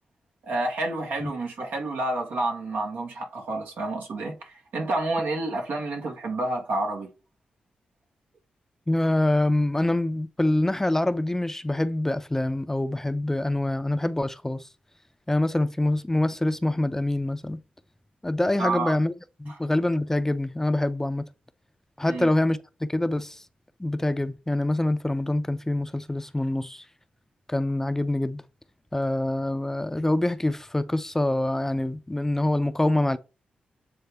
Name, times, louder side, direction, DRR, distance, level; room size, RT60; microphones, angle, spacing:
voice 1, 0.4-7.1 18.6-18.9 19.5-19.6 22.1-22.3, right 2 dB, 80° right, 1.6 m, -29 dB
voice 2, 8.9-14.7 15.3-17.6 18.2-19.1 19.4-21.2 22.0-22.6 22.9-23.4 23.8-26.8 27.5-28.4 28.9-33.2, left 1 dB, 15° left, 0.5 m, -25 dB
7.8 x 3.5 x 3.4 m
cardioid pair, 55°, 3 cm